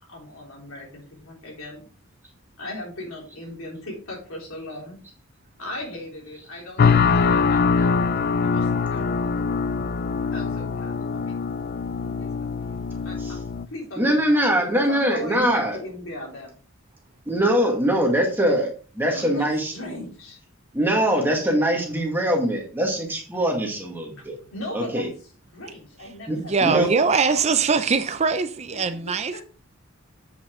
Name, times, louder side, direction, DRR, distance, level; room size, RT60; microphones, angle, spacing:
voice 1, 0.1-1.9 2.6-5.0 5.6-8.0 8.4-9.5 10.3-11.3 12.2-13.4 13.7-14.5 14.7-16.5 19.1-20.4 24.2-24.3 24.5-25.1 25.5-27.5 29.3-29.4, left 1 dB, 70° left, 3.5 m, -38 dB
sound 1, 6.8-13.6, left 5 dB, 45° left, 0.4 m, -23 dB
voice 2, 14.0-15.8 17.3-19.7 20.7-24.4 24.7-25.1 26.3-26.9, equal, 10° right, 1.7 m, -22 dB
voice 3, 26.4-29.4, right 5 dB, 30° right, 0.4 m, -22 dB
7.9 x 6.1 x 3.7 m
head